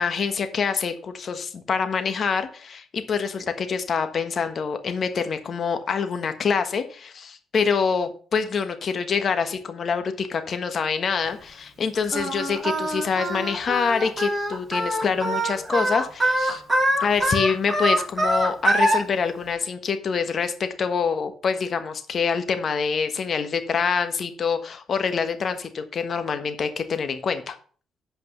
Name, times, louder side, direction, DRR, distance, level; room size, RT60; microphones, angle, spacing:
voice 1, 0.0-16.6 17.0-27.6, left 5 dB, 50° left, 8 dB, 1.3 m, -26 dB
Singing, 12.1-19.0, right 1 dB, 15° right, 3.7 m, -24 dB
8.0 x 5.3 x 6.5 m, 0.42 s
cardioid pair, 95°, 0 cm